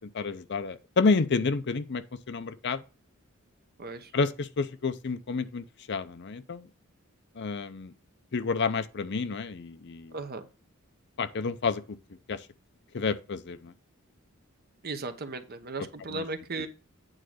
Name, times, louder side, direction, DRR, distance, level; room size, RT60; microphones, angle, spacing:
voice 1, 0.0-2.8 4.1-6.7 7.4-7.9 8.3-10.1 11.2-12.0 12.3-12.5 12.9-13.7 16.1-16.2, left 4 dB, 55° left, 0.6 m, -30 dB
voice 2, 3.8-4.1 10.1-10.5 14.8-16.7, right 3 dB, 45° right, 1.0 m, -36 dB
9.0 x 3.8 x 6.4 m
head